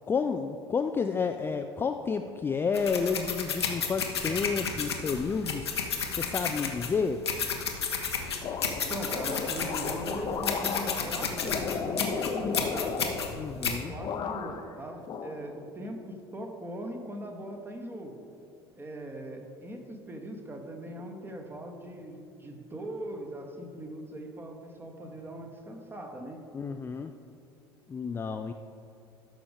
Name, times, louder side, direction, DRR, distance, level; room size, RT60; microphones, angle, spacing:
voice 1, 0.1-5.7 6.1-7.2 13.4-13.9 26.5-27.1 27.9-28.5, left 5 dB, 15° left, 6 dB, 0.3 m, -30 dB
sound 1, 2.7-13.8, left 5 dB, 80° left, 0.9 m, -32 dB
sound 2, 8.4-13.7 14.0-14.7 15.1-15.9, left 6 dB, 35° left, 0.7 m, -35 dB
voice 2, 8.7-13.0 13.7-18.1 18.8-26.4, right 1 dB, 15° right, 3 dB, 1.2 m, -40 dB
13.5 x 6.0 x 3.6 m, 2.8 s
figure-of-eight pair, 70°, 14 cm